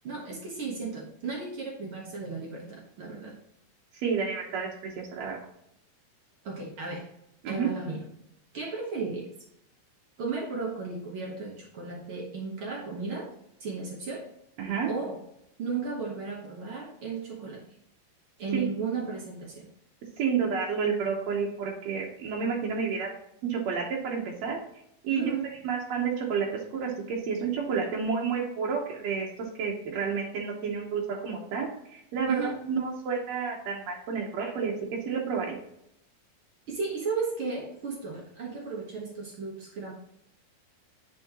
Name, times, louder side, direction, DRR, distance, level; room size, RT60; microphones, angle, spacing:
voice 1, 0.0-3.4 6.4-7.1 7.5-8.0 8.5-9.3 10.2-13.3 13.6-14.3 14.9-15.2 15.6-17.6 18.4-19.7 25.1-25.5 32.3-32.6 36.7-39.9, right 4 dB, 85° right, -1 dB, 1.1 m, -34 dB
voice 2, 3.9-5.4 7.4-7.7 14.6-14.9 18.5-18.6 20.2-23.1 23.4-24.6 25.0-25.3 25.6-32.4 32.7-34.7 35.0-35.6, right 6 dB, 70° right, -2 dB, 1.7 m, -30 dB
10.0 x 4.6 x 2.9 m, 0.78 s
omnidirectional pair, 4.1 m